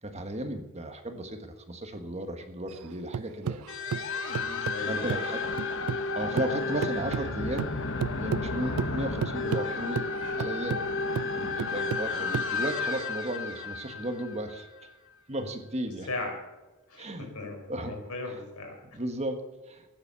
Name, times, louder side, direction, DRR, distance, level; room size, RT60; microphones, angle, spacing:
voice 1, 0.0-3.6 4.9-5.4 6.1-7.7 8.2-10.0 10.3-10.8 11.3-14.7 15.3-16.1 17.0-17.3 17.7-17.9 18.3-18.4 18.9-19.9, right 1 dB, 30° right, 6 dB, 1.5 m, -35 dB
sound 1, 2.7-6.1 6.4-13.0, right 7 dB, 70° right, 0.4 m, -34 dB
sound 2, 3.7-14.9, left 3 dB, 60° left, 1.0 m, -32 dB
voice 2, 4.3-5.0 16.1-16.3 16.9-18.8, left 2 dB, 90° left, 2 dB, 5.1 m, -38 dB
16.0 x 10.5 x 7.0 m, 1.1 s
head